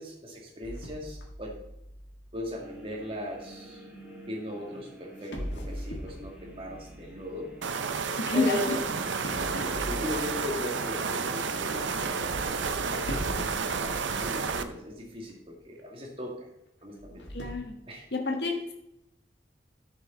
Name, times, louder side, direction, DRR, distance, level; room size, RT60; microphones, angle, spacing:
voice 1, 0.0-1.6 2.3-3.8 4.3-7.5 8.3-8.7 9.6-16.5 16.8-17.2 17.9-18.0, left 1 dB, 30° right, -1 dB, 2.1 m, -38 dB
sound 1, 0.6-3.8 4.7-4.8 5.2-8.6 9.2-11.1 13.0-14.8 15.1-15.2 15.8-15.9 16.9-17.6, equal, 80° left, 1.7 m, -41 dB
sound 2, 2.6-12.5, right 1 dB, 5° right, 2.4 m, -49 dB
sound 3, 7.6-14.6, right 5 dB, 85° right, 0.7 m, -31 dB
voice 2, 8.2-8.6 9.5-9.8 17.3-17.8 18.1-18.7, left 2 dB, 65° left, 2 dB, 1.4 m, -29 dB
11.0 x 6.7 x 3.9 m, 0.84 s
head